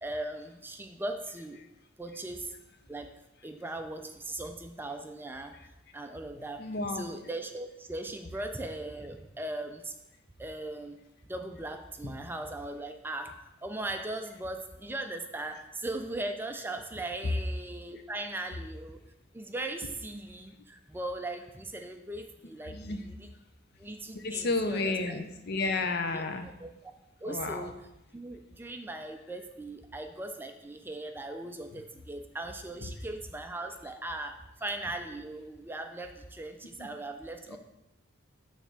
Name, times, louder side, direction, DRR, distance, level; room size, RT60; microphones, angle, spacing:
voice 1, 0.0-1.6 2.0-2.5 2.9-3.1 3.4-6.7 6.9-9.9 10.4-11.0 11.3-19.0 19.3-23.3 23.8-25.2 26.1-26.9 27.2-27.7 28.1-37.6, right 2 dB, 10° right, 5 dB, 0.4 m, -39 dB
voice 2, 6.6-7.0 12.0-12.2 22.6-23.0 24.1-26.4 27.2-27.7 36.8-36.9 37.5-37.6, left 3 dB, 55° left, 7 dB, 0.6 m, -32 dB
6.7 x 3.3 x 6.1 m, 0.91 s
head